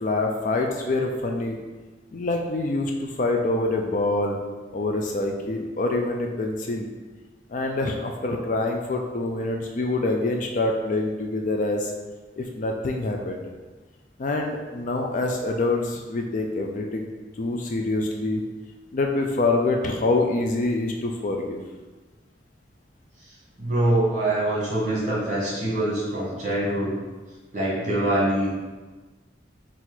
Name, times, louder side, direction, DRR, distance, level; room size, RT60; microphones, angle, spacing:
voice 1, 0.0-1.6 2.1-4.4 4.7-6.9 7.5-11.9 12.4-13.4 14.2-17.1 17.4-18.4 18.9-21.6, left 2 dB, 40° left, 2 dB, 0.4 m, -25 dB
voice 2, 23.6-26.9 27.5-28.5, right 1 dB, 40° right, -6 dB, 1.4 m, -24 dB
4.4 x 2.4 x 4.0 m, 1.3 s
head